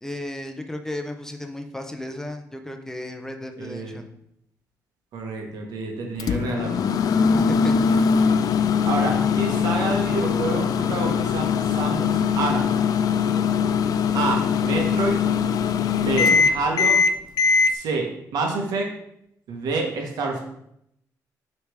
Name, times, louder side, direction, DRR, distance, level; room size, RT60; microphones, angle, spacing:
voice 1, 0.0-4.1 7.5-7.7, left 1 dB, 5° left, 5 dB, 0.5 m, -34 dB
voice 2, 3.6-4.0 5.1-6.9 8.8-12.7 14.1-15.2 15.9-17.0 17.7-18.9 19.5-20.4, right 3 dB, 85° right, 2 dB, 1.2 m, -28 dB
Microwave oven, 6.2-17.7, left 6 dB, 65° left, 0.4 m, -21 dB
6.3 x 3.3 x 4.9 m, 0.76 s
cardioid pair, 95°, 7 cm